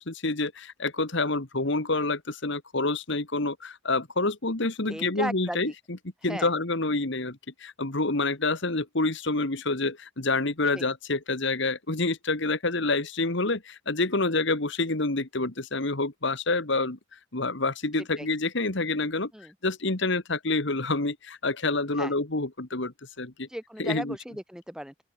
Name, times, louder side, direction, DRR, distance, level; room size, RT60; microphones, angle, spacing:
voice 1, 0.0-6.0 6.2-17.0 17.3-19.3 19.6-23.5 23.8-24.2, left 3 dB, 60° left, 1.9 m, -28 dB
voice 2, 4.9-5.7 6.3-6.5 10.7-10.9 18.2-18.3 19.3-19.5 22.0-22.1 23.5-25.0, equal, 5° right, 3.8 m, -36 dB
open air
head